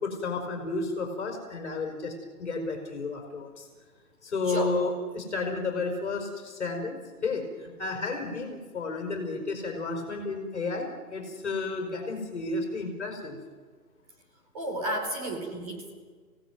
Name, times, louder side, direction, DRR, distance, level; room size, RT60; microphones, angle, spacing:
voice 1, 0.0-3.7 4.2-13.4, left 3 dB, 45° left, 3 dB, 5.3 m, -32 dB
voice 2, 14.5-15.9, right 1 dB, 25° right, 1 dB, 4.7 m, -32 dB
27.5 x 17.5 x 9.4 m, 1.5 s
hypercardioid pair, 170°, 47 cm